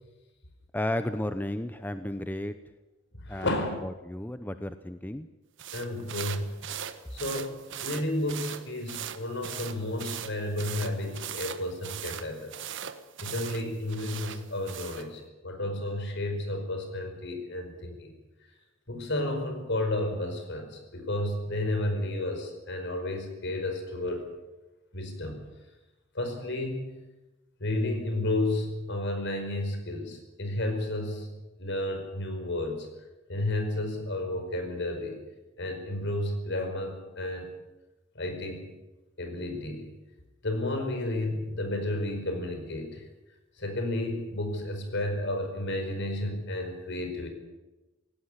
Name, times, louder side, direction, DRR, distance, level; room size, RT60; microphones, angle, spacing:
voice 1, 0.7-2.6 3.3-3.5 3.8-5.3, left 1 dB, 10° left, 10 dB, 0.7 m, -33 dB
voice 2, 3.3-3.8 5.7-6.4 7.1-7.6 7.8-12.5 13.2-18.1 18.9-24.3 24.9-25.4 26.1-27.0 27.6-31.3 31.6-32.9 33.3-35.2 35.6-37.5 38.1-38.7 39.2-39.9 40.4-43.0 43.6-47.3, left 1 dB, 60° left, 6 dB, 5.0 m, -32 dB
sound 1, 5.6-15.1, right 9 dB, 65° right, 1.3 m, -40 dB
17.5 x 17.5 x 9.9 m, 1.1 s
head